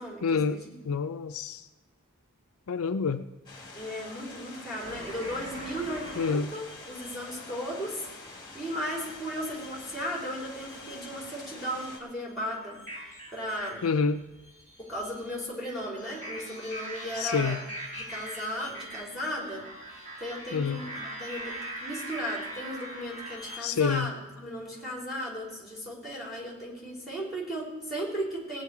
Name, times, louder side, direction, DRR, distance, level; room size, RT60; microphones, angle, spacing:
voice 1, 0.2-1.7 2.7-3.3 6.2-6.5 13.8-14.2 17.1-17.6 20.5-20.8 23.6-24.1, left 5 dB, 70° left, 9 dB, 0.5 m, -28 dB
sound 1, 3.5-12.0, left 3 dB, 20° left, 2.0 m, -46 dB
voice 2, 3.7-8.1 8.3-12.8 13.3-13.8 14.8-17.6 18.0-19.7 20.2-28.6, equal, ahead, -2 dB, 3.5 m, -36 dB
sound 2, 4.8-7.2 8.7-10.0 10.3-11.2 11.6-23.6, right 1 dB, 35° right, 4.4 m, -42 dB
17.5 x 9.3 x 4.7 m, 1.1 s
head